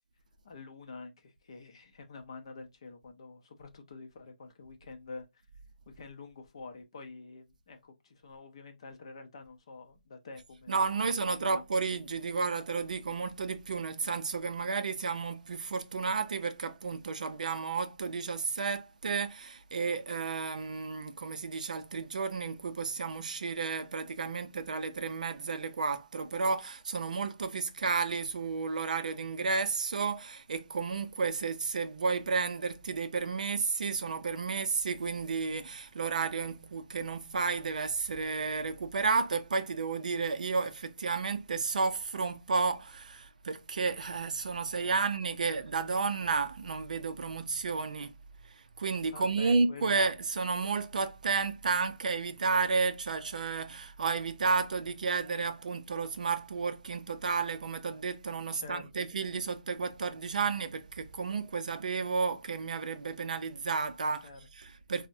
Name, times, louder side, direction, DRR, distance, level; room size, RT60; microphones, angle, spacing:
voice 1, 0.4-5.2 5.9-11.1 11.4-11.6 44.8-45.0 49.1-50.0 58.5-59.1 64.2-64.4, left 3 dB, 35° left, 0.5 m, -47 dB
voice 2, 10.7-48.1 48.8-64.3 64.6-65.1, right 4 dB, 55° right, 0.4 m, -32 dB
3.3 x 2.1 x 2.6 m
hypercardioid pair, 175°, 5 cm